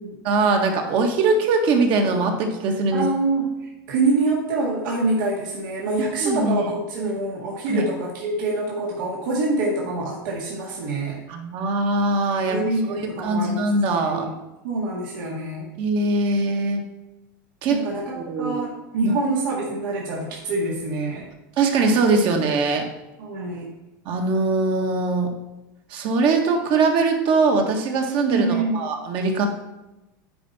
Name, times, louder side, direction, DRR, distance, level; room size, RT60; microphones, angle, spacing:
voice 1, 0.2-3.1 6.2-6.7 7.7-7.8 11.3-12.6 13.0-14.2 15.8-16.8 17.6-17.8 18.1-18.6 21.6-22.9 24.0-25.3 25.9-29.5, right 3 dB, 50° right, 3 dB, 1.6 m, -21 dB
voice 2, 2.9-11.2 12.5-14.3 14.6-15.7 17.7-21.3 23.2-23.7 28.3-28.7, right 2 dB, 75° right, -3 dB, 1.9 m, -26 dB
9.6 x 4.4 x 4.2 m, 1.0 s
supercardioid pair, 115°, 11 cm